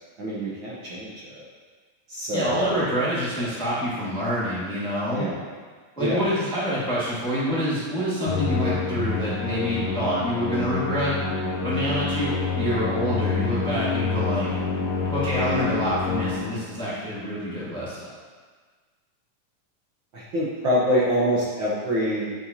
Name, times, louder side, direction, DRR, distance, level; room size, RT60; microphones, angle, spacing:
voice 1, 0.2-1.4 2.1-2.8 5.1-5.4 6.0-6.2 20.1-22.3, equal, 85° right, -7 dB, 1.0 m, -25 dB
voice 2, 2.3-5.3 6.0-11.2 11.6-14.5 15.1-18.1, equal, 5° left, -8 dB, 0.4 m, -27 dB
Musical instrument, 8.3-16.8, left 4 dB, 85° left, 1.3 m, -27 dB
9.5 x 5.8 x 2.8 m, 1.5 s
omnidirectional pair, 3.8 m